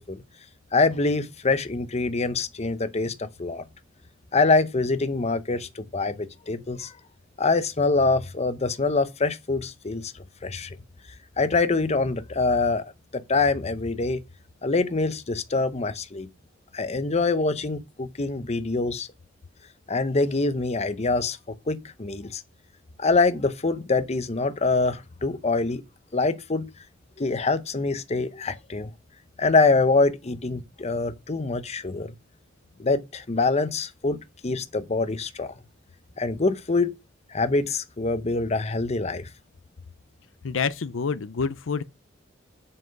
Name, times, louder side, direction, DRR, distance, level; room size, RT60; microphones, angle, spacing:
voice 1, 0.7-3.6 4.3-6.9 7.4-10.8 11.4-12.8 13.1-14.2 14.6-16.3 16.7-19.1 19.9-22.4 23.0-25.8 26.1-26.7 27.2-28.9 29.4-32.2 32.8-35.5 36.2-36.9 37.3-39.3, left 3 dB, 35° left, 0.8 m, -25 dB
voice 2, 40.4-41.8, left 5 dB, 70° left, 0.5 m, -27 dB
7.8 x 5.8 x 5.3 m
head